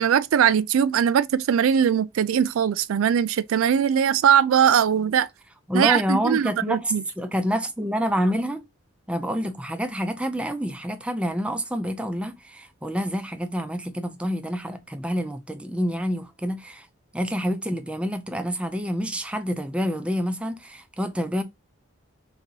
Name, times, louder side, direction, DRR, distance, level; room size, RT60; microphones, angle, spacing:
voice 1, 0.0-5.3 5.7-7.0, right 8 dB, 80° right, 0.3 m, -20 dB
voice 2, 5.7-8.6 9.1-16.9 17.1-21.4, equal, 5° right, 0.4 m, -27 dB
3.9 x 2.8 x 4.5 m
head